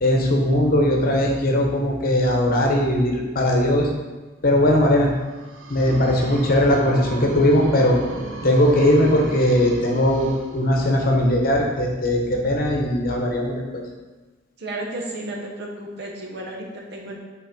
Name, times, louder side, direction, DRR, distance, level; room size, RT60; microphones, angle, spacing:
voice 1, 0.0-3.9 4.4-5.1 5.7-8.0 8.4-10.3 10.5-13.5, left 1 dB, 50° left, 0 dB, 1.0 m, -19 dB
sound 1, 5.2-11.1, right 1 dB, 90° right, 0.8 m, -34 dB
voice 2, 14.6-17.2, right 1 dB, 60° right, 0 dB, 1.1 m, -33 dB
5.2 x 4.1 x 5.3 m, 1.2 s
head